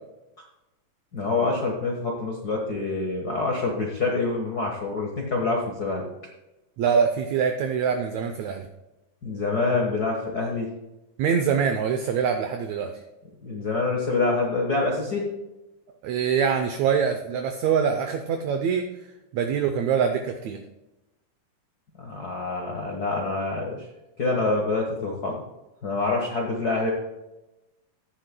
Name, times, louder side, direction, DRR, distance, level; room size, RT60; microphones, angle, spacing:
voice 1, 1.1-6.0 9.2-10.7 13.4-15.3 22.0-23.9 24.2-25.3 25.8-26.9, left 3 dB, 55° left, 0 dB, 1.0 m, -26 dB
voice 2, 6.8-8.7 11.2-12.9 16.0-18.8 19.3-20.6, right 7 dB, 80° right, 6 dB, 1.6 m, -24 dB
15.5 x 10.0 x 2.2 m, 0.99 s
omnidirectional pair, 3.9 m